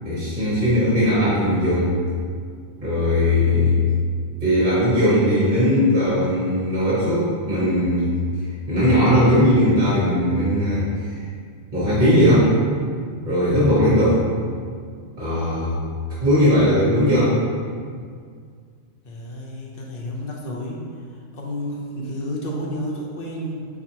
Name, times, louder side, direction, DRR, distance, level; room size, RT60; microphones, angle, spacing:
voice 1, 0.0-1.9 2.8-3.8 4.4-8.1 8.7-11.1 11.7-12.5 13.2-14.2 15.2-15.8 16.2-17.4, equal, 40° right, -10 dB, 1.2 m, -18 dB
voice 2, 19.0-20.9 21.3-23.7, equal, 55° left, -2 dB, 0.7 m, -31 dB
4.1 x 4.1 x 2.8 m, 2.1 s
omnidirectional pair, 1.3 m